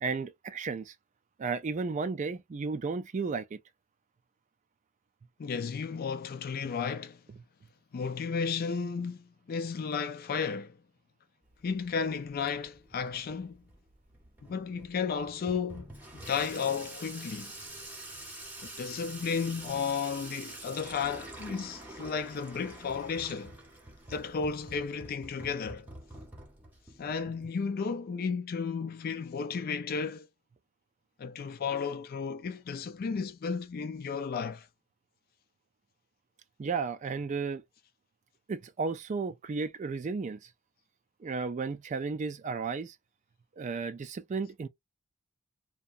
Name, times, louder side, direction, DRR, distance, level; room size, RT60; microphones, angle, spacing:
voice 1, 0.0-0.9 1.4-3.6 36.6-37.6 38.5-40.4 41.2-43.0 43.6-44.7, right 4 dB, 35° right, 0.3 m, -33 dB
voice 2, 5.4-7.2 7.9-10.8 11.6-13.6 14.5-17.5 18.6-23.5 24.1-25.9 27.0-30.3 31.2-34.7, left 5 dB, 45° left, 0.3 m, -33 dB
Water tap faucet / Sink (filling or washing), 11.4-27.5, right 2 dB, 10° right, 0.8 m, -47 dB
2.8 x 2.2 x 2.4 m
head